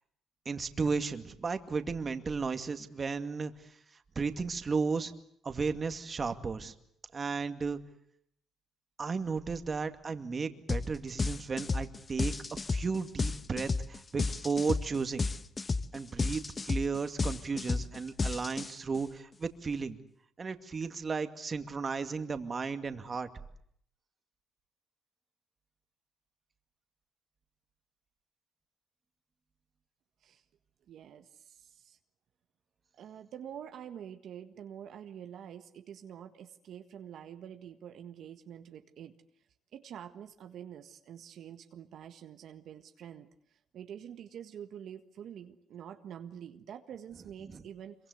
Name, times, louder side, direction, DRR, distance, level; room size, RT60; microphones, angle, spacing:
voice 1, 0.5-3.5 4.2-5.1 5.4-6.7 7.1-7.8 9.0-12.3 12.7-15.2 15.9-20.0 20.4-23.3 47.4-47.6, right 4 dB, 35° right, 8 dB, 2.3 m, -34 dB
sound 1, 10.7-10.9 11.2-19.0, left 4 dB, 30° left, 1.2 m, -32 dB
voice 2, 30.9-32.0 32.9-39.2 39.7-48.0, right 9 dB, 70° right, 7 dB, 1.6 m, -47 dB
26.0 x 23.5 x 8.0 m, 0.68 s
cardioid pair, 90°, 0 cm